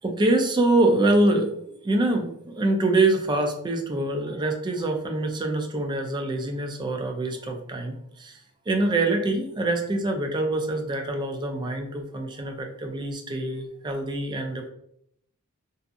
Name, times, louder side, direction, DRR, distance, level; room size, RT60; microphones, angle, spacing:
voice 1, 0.0-1.5 1.8-8.4 8.7-14.7, right 2 dB, 20° right, 3 dB, 0.3 m, -25 dB
2.6 x 2.4 x 2.4 m, 0.72 s
head